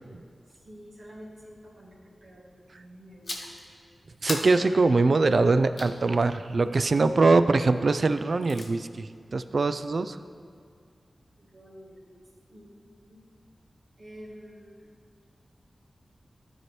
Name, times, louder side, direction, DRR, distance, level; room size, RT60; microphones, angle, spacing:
voice 1, 0.5-3.4 11.4-12.2 12.5-13.3 14.0-15.0, equal, 80° right, -7 dB, 2.0 m, -49 dB
sound 1, 3.2-3.7 4.3-6.0 8.1-8.7, left 2 dB, 60° left, 1.0 m, -37 dB
voice 2, 4.2-10.2, right 3 dB, 65° right, 11 dB, 0.3 m, -23 dB
12.0 x 4.5 x 3.2 m, 2.1 s
cardioid pair, 40°, 0 cm